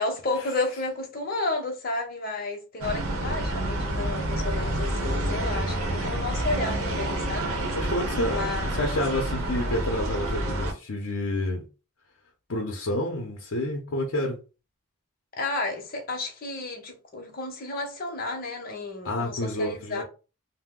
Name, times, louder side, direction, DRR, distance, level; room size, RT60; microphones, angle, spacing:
voice 1, 0.0-7.5 8.3-8.9 15.4-20.0, left 2 dB, 40° left, 0.7 m, -32 dB
sound 1, 2.8-10.7, right 1 dB, 80° right, 0.8 m, -28 dB
voice 2, 7.7-8.4 8.7-11.6 12.5-14.4 19.0-20.0, left 1 dB, 75° left, 0.6 m, -29 dB
2.7 x 2.0 x 3.6 m
head